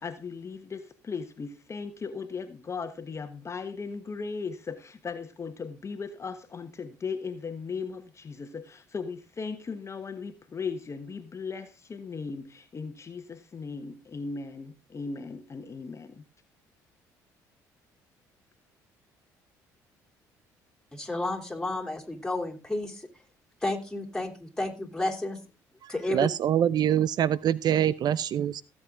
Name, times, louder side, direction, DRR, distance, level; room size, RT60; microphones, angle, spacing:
voice 1, 0.0-16.2, left 5 dB, 35° left, 1.3 m, -37 dB
voice 2, 20.9-23.1 23.6-25.4 25.9-26.3, left 2 dB, 5° left, 3.3 m, -31 dB
voice 3, 25.8-28.6, right 10 dB, 55° right, 0.5 m, -25 dB
16.5 x 7.8 x 3.7 m
hypercardioid pair, 60°, 8 cm